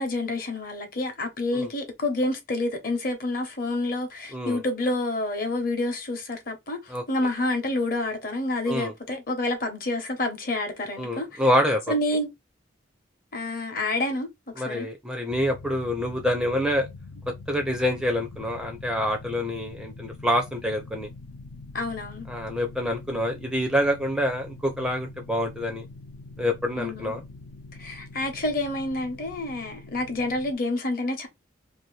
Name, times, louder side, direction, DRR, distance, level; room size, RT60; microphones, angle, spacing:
voice 1, 0.0-11.4 11.9-12.3 13.3-14.3 14.6-14.9 21.7-22.3 26.8-27.1 27.8-31.3, left 2 dB, 45° left, 0.8 m, -28 dB
voice 2, 4.3-4.6 6.9-7.0 8.7-8.9 11.0-11.8 14.6-16.9 17.5-21.1 22.3-25.8 26.4-27.2, equal, 5° right, 0.4 m, -26 dB
sound 1, 15.3-30.5, left 3 dB, 75° left, 0.4 m, -44 dB
2.7 x 2.5 x 3.1 m
head